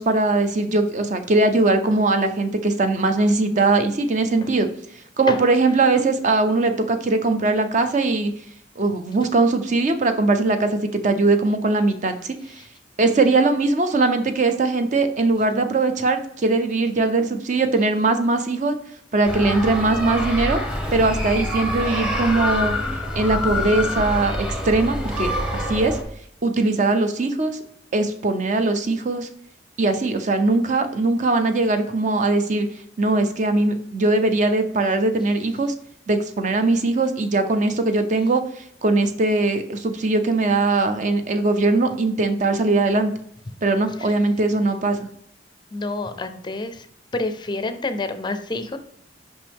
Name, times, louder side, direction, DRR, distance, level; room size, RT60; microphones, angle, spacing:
voice 1, 0.0-4.7 5.2-8.3 8.8-12.6 13.0-18.8 19.1-20.6 20.9-22.7 23.1-26.0 26.4-27.6 27.9-29.3 29.8-32.7 33.0-35.7 36.1-43.1 43.6-45.1, right 3 dB, 45° right, 8 dB, 0.5 m, -20 dB
sound 1, 19.3-26.0, left 1 dB, 5° right, 0.9 m, -26 dB
voice 2, 45.7-46.9 47.1-48.8, left 2 dB, 25° left, 9 dB, 0.4 m, -28 dB
5.7 x 5.4 x 3.5 m, 0.69 s
head